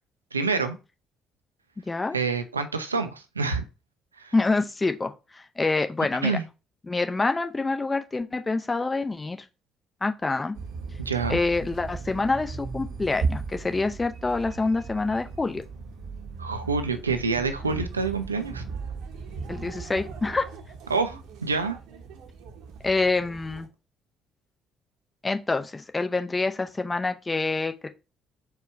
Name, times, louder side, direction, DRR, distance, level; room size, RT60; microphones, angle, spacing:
voice 1, 0.3-0.8 2.1-3.6 4.2-4.3 6.2-6.4 11.0-11.4 16.4-18.6 20.9-21.8, right 4 dB, 85° right, 0.3 m, -27 dB
voice 2, 1.8-2.2 4.3-6.4 6.9-9.5 10.0-10.5 11.3-15.6 19.5-20.5 22.8-23.7 25.2-27.9, left 3 dB, 20° left, 0.6 m, -26 dB
sound 1, 10.5-23.7, right 4 dB, 65° right, 0.7 m, -37 dB
4.5 x 2.2 x 4.4 m
figure-of-eight pair, 45°, 0 cm